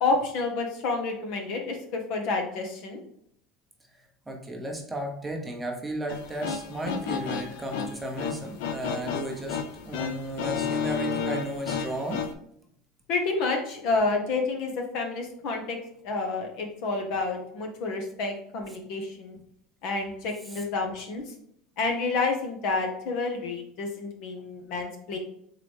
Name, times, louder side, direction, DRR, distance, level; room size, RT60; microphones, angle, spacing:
voice 1, 0.0-3.0 13.1-15.8 16.0-19.4 19.8-21.2 21.8-25.2, left 3 dB, 65° left, 3 dB, 0.9 m, -29 dB
voice 2, 4.3-9.6 9.8-12.3 20.5-20.6, right 1 dB, 10° right, 1 dB, 0.8 m, -34 dB
sound 1, 6.1-12.3, left 7 dB, 80° left, 0.4 m, -32 dB
3.9 x 3.1 x 3.3 m, 0.71 s
supercardioid pair, 130°, 0 cm